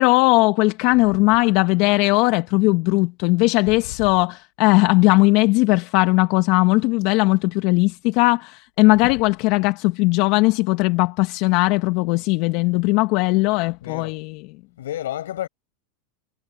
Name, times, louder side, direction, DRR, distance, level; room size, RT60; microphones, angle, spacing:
voice 1, 0.0-14.4, left 23 dB, 55° left, 1.4 m, -18 dB
voice 2, 13.8-14.2 14.8-15.5, left 12 dB, 80° left, 7.5 m, -31 dB
hypercardioid pair, 105°, 0 cm